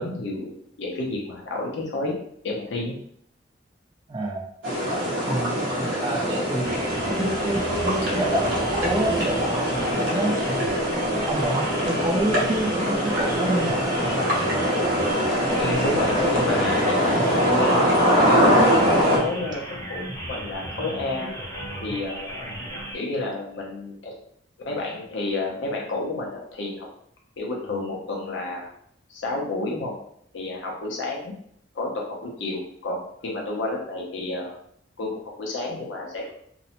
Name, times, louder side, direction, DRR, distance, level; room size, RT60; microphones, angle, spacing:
voice 1, 0.0-2.2 2.4-2.9 15.6-18.0 18.2-18.7 19.1-21.3 21.8-22.5 22.9-24.1 24.7-26.9 27.4-28.7 29.1-30.0 30.3-31.3 31.7-34.6 35.0-36.3, left 2 dB, 70° left, -1 dB, 0.6 m, -30 dB
voice 2, 4.1-4.5 5.2-10.8 11.1-13.8, right 1 dB, 25° right, 0 dB, 0.3 m, -28 dB
sound 1, 4.6-19.2, equal, 75° right, 0.9 m, -23 dB
sound 2, 6.6-23.0, equal, 15° left, 0.6 m, -35 dB
2.6 x 2.1 x 2.8 m, 0.67 s
head